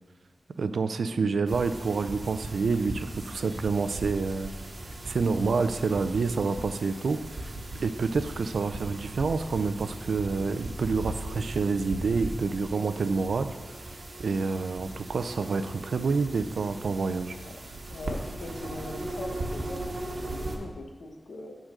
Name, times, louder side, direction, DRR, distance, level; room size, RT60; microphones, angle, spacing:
voice 1, 0.6-4.5 5.1-7.5 7.8-13.5 14.2-17.4, right 4 dB, 85° right, 11 dB, 0.4 m, -28 dB
sound 1, 1.4-20.6, right 2 dB, 50° right, 1.2 m, -38 dB
voice 2, 17.9-21.6, left 2 dB, 85° left, 3 dB, 1.0 m, -41 dB
8.9 x 3.8 x 6.5 m, 1.3 s
wide cardioid pair, 90°, 0 cm